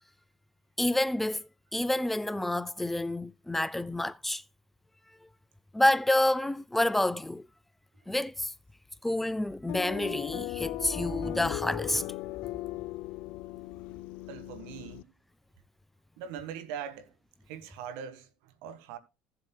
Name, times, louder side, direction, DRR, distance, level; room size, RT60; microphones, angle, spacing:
voice 1, 0.8-4.4 5.7-7.4 8.1-8.5 9.0-12.0, left 1 dB, 5° left, 0.5 m, -28 dB
sound 1, 9.7-15.0, left 18 dB, 70° left, 0.4 m, -38 dB
voice 2, 14.3-15.1 16.2-17.1 17.5-19.0, right 8 dB, 75° right, 1.5 m, -41 dB
16.0 x 7.6 x 2.3 m
supercardioid pair, 90°, 3 cm